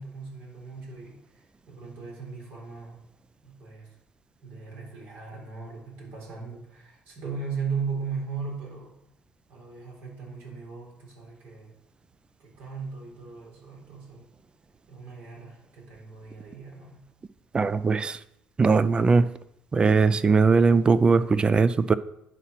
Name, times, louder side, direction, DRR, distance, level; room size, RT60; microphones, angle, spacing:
voice 1, 0.0-3.0 3.4-3.9 4.4-9.0 9.5-11.8 12.4-14.3 14.9-17.1, right 5 dB, 75° right, -2 dB, 3.8 m, -38 dB
voice 2, 17.5-18.2 18.6-19.3 19.7-21.9, right 4 dB, 30° right, 16 dB, 0.4 m, -20 dB
9.9 x 4.5 x 5.8 m, 0.79 s
cardioid pair, 95°, 3 cm